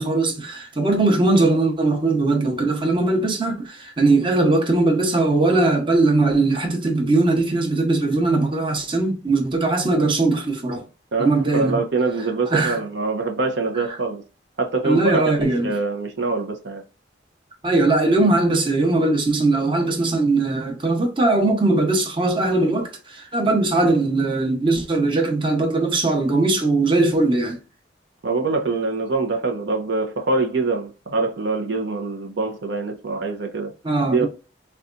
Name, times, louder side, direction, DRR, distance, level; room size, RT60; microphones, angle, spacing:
voice 1, 0.0-10.8 11.2-11.8 12.5-12.8 14.8-15.7 17.6-27.6 33.8-34.3, right 2 dB, 30° right, 0.9 m, -20 dB
voice 2, 11.1-14.2 14.6-16.8 28.2-33.7 34.1-34.3, right 3 dB, 70° right, 0.6 m, -24 dB
4.0 x 2.3 x 2.5 m
head